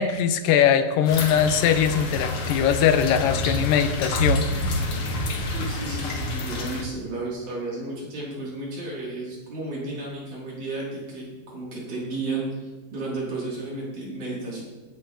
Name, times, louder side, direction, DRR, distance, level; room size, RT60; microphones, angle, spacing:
voice 1, 0.0-4.5, left 8 dB, 85° left, 10 dB, 2.4 m, -21 dB
sound 1, 1.1-6.8, left 1 dB, 50° left, 2.0 m, -28 dB
voice 2, 5.4-14.6, right 2 dB, 60° right, -6 dB, 5.6 m, -33 dB
16.0 x 9.1 x 4.6 m, 1.2 s
omnidirectional pair, 3.9 m